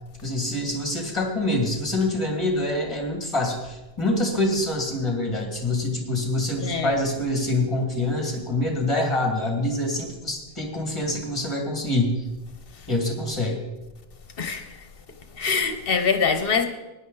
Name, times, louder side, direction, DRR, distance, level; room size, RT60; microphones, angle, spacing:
voice 1, 0.2-12.3 12.9-13.6, left 1 dB, 25° left, 2.3 m, -25 dB
voice 2, 6.6-7.0 14.4-14.7 15.3-16.7, left 5 dB, 55° left, 1.2 m, -24 dB
15.5 x 10.5 x 4.0 m
omnidirectional pair, 1.2 m